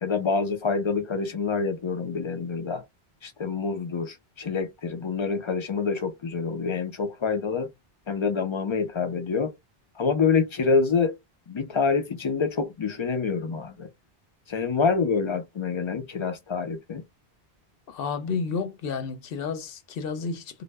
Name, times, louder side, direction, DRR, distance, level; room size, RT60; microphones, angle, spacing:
voice 1, 0.0-2.8 3.2-7.7 8.1-9.5 10.0-11.1 11.5-13.9 14.5-17.0, left 5 dB, 50° left, 0.3 m, -26 dB
voice 2, 17.9-20.6, left 5 dB, 70° left, 0.7 m, -31 dB
2.1 x 2.0 x 3.2 m
omnidirectional pair, 1.0 m